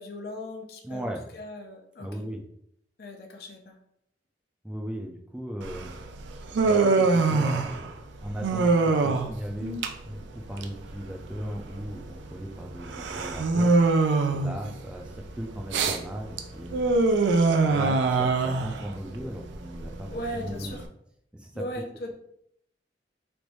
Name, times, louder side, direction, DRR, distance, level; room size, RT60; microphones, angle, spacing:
voice 1, 0.0-2.2 3.0-3.8 20.0-20.8 21.5-22.1, equal, 60° left, 2 dB, 0.5 m, -38 dB
voice 2, 0.8-1.2 2.0-2.4 4.6-6.0 6.6-13.7 14.3-17.0 17.6-20.7 21.3-21.6, equal, 5° right, 1 dB, 0.4 m, -37 dB
Human voice, 5.6-20.8, right 3 dB, 85° right, 0.4 m, -25 dB
3.2 x 2.6 x 3.1 m, 0.73 s
head